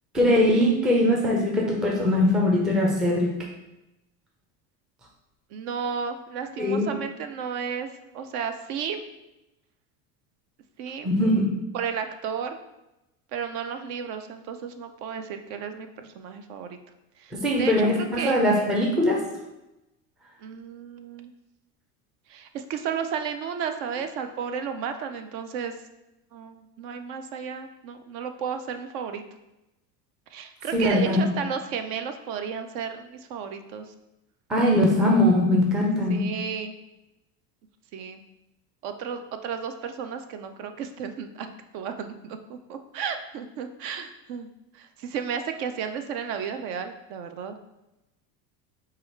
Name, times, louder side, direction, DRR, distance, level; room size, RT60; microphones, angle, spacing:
voice 1, 0.1-3.4 6.6-6.9 11.0-11.5 17.3-19.2 30.7-31.3 34.5-36.3, left 1 dB, ahead, -2 dB, 0.3 m, -21 dB
voice 2, 5.5-7.9 8.1-9.0 10.8-11.1 11.7-12.6 13.3-16.8 17.2-18.5 20.4-21.3 22.3-25.8 26.3-29.2 30.3-33.9 36.1-36.8 37.9-38.2 38.8-44.5 44.7-47.6, right 7 dB, 55° right, 8 dB, 0.5 m, -33 dB
4.8 x 2.4 x 4.3 m, 0.94 s
supercardioid pair, 130°, 47 cm